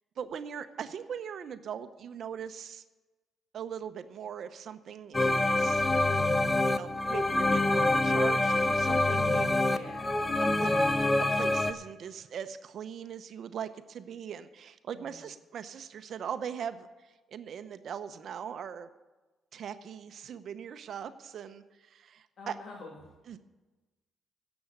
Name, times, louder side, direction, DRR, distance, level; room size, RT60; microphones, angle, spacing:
voice 1, 0.2-2.8 3.5-5.8 6.7-9.8 10.5-10.7 11.0-16.9 17.3-18.9 19.5-22.6 23.3-23.4, right 8 dB, 60° right, 11 dB, 0.7 m, -40 dB
sound 1, 5.1-11.7, left 2 dB, 15° left, 0.7 m, -26 dB
voice 2, 9.6-10.8 14.9-15.3 22.4-23.1, left 3 dB, 60° left, 1 dB, 1.8 m, -48 dB
10.5 x 7.0 x 9.1 m, 1.2 s
cardioid pair, 90°, 0 cm